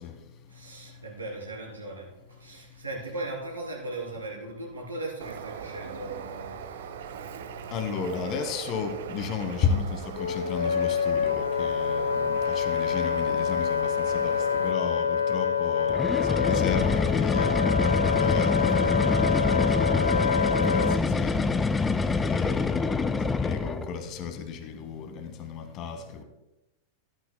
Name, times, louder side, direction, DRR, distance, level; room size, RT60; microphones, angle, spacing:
voice 1, 0.5-2.1 2.4-6.7, right 2 dB, 80° right, -2 dB, 3.3 m, -38 dB
Bird, 5.2-14.7, right 8 dB, 60° right, 0.7 m, -40 dB
voice 2, 7.7-17.5 18.2-21.6 22.3-26.2, left 6 dB, 35° left, 7 dB, 1.3 m, -33 dB
Wind instrument woodwind instrument, 10.2-21.0, left 7 dB, 70° left, 0.4 m, -26 dB
sound 1, 15.9-23.9, left 4 dB, 15° left, 0.5 m, -25 dB
13.5 x 12.5 x 2.2 m, 0.96 s
figure-of-eight pair, 90°, 0 cm